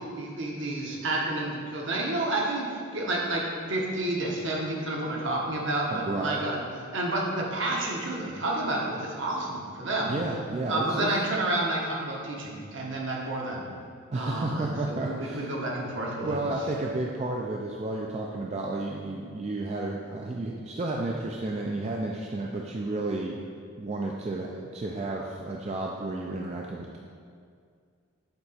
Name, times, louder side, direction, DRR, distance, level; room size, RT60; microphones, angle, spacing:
voice 1, 0.1-6.6 6.9-10.1 10.7-13.6 14.1-16.4, right 2 dB, 65° right, -2 dB, 1.0 m, -30 dB
voice 2, 5.9-6.4 10.1-11.1 14.1-15.6 16.2-23.4 23.8-27.0, right 2 dB, 30° right, -1 dB, 0.3 m, -32 dB
7.9 x 2.9 x 4.2 m, 2.2 s
head